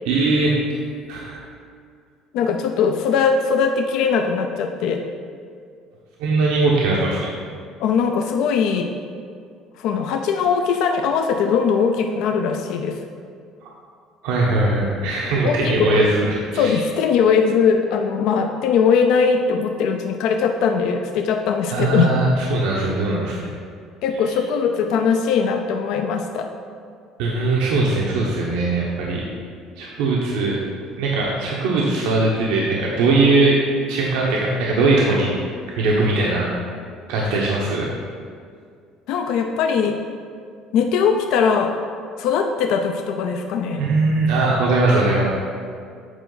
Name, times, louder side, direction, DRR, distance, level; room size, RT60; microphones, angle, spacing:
voice 1, 0.1-0.5 1.1-1.4 6.2-7.3 13.6-13.7 14.2-16.8 21.7-23.3 27.2-29.2 29.8-30.6 31.0-33.6 33.9-35.3 35.7-36.5 37.1-37.9 43.8-45.2, right 2 dB, 85° right, -4 dB, 0.9 m, -20 dB
voice 2, 2.3-5.0 7.8-8.9 9.8-13.0 15.4-16.1 16.5-22.1 24.0-26.5 39.1-40.0 40.7-41.7 42.2-43.8, left 6 dB, 65° left, 4 dB, 0.4 m, -20 dB
8.0 x 4.5 x 3.9 m, 2.2 s
cardioid pair, 145°, 0 cm